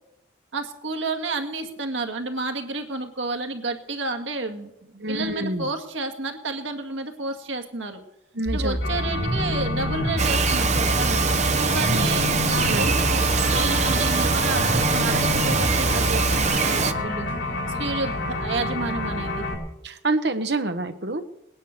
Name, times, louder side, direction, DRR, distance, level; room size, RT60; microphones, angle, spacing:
voice 1, 0.5-8.0 8.5-17.3 17.8-19.4, right 3 dB, 80° right, 4 dB, 2.0 m, -31 dB
voice 2, 5.0-5.7 8.3-8.8 11.9-12.1 12.7-12.9 19.8-21.2, right 2 dB, 55° right, 9 dB, 1.1 m, -27 dB
sound 1, 8.5-16.5, equal, 15° left, 2.4 m, -27 dB
sound 2, 8.8-19.5, left 2 dB, 75° left, 5.2 m, -29 dB
Bird vocalization bird call bird song, 10.2-16.9, right 5 dB, 35° right, 0.7 m, -23 dB
19.5 x 10.0 x 6.7 m, 0.84 s
head